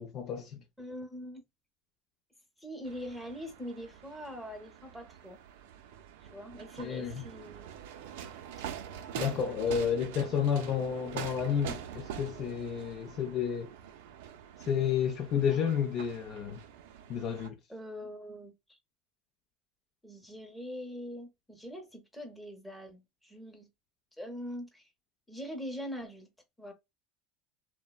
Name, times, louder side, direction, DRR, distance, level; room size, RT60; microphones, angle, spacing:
voice 1, 0.0-0.6 6.8-7.2 9.2-13.7 14.6-16.6 17.1-17.6, left 8 dB, 45° left, 0.4 m, -31 dB
voice 2, 0.8-1.4 2.6-5.4 6.3-7.7 9.4-9.6 17.7-18.8 20.0-23.7 24.2-24.9 25.3-26.3 26.6-26.7, equal, ahead, 0.7 m, -43 dB
sound 1, 2.8-17.5, right 9 dB, 90° right, 0.4 m, -45 dB
2.9 x 2.1 x 2.3 m
supercardioid pair, 130°, 0 cm